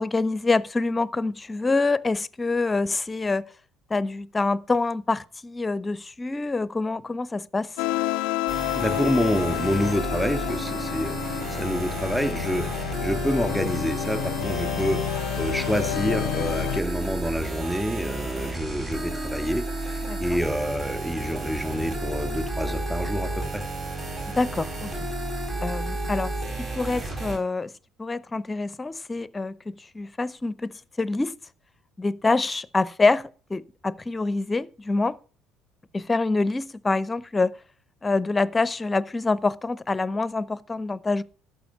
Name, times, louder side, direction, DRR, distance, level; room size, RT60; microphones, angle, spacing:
voice 1, 0.0-3.5 3.9-7.8 20.1-20.4 24.3-24.9 25.6-26.3 26.6-27.7 28.0-31.4 32.0-35.2 35.9-37.5 38.0-41.2, left 3 dB, 20° left, 0.7 m, -26 dB
sound 1, 7.8-16.8, left 17 dB, 65° left, 0.4 m, -30 dB
sound 2, 8.5-27.4, right 2 dB, 40° right, 4.1 m, -32 dB
voice 2, 8.7-23.6, equal, 5° right, 2.8 m, -28 dB
12.0 x 7.5 x 5.8 m
hypercardioid pair, 60°, 0 cm